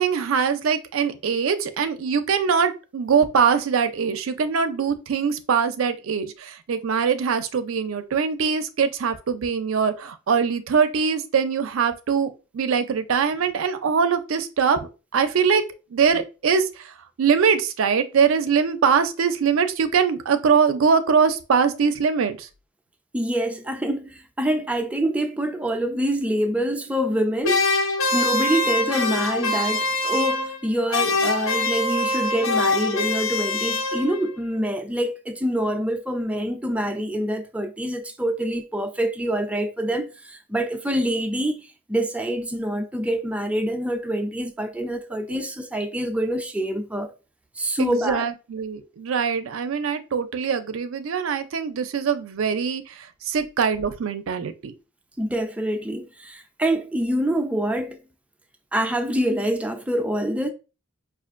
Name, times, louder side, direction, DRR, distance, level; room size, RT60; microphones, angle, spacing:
voice 1, 0.0-15.6 15.9-16.7 17.2-22.5 47.8-52.8 53.3-54.7, right 6 dB, 80° right, 0.4 m, -22 dB
voice 2, 23.1-27.6 28.1-47.1 47.6-48.2 55.2-58.0 58.7-60.5, right 1 dB, 5° right, 0.4 m, -26 dB
sound 1, 27.4-30.7 30.9-34.3, left 2 dB, 85° left, 0.8 m, -24 dB
5.0 x 2.4 x 2.4 m
head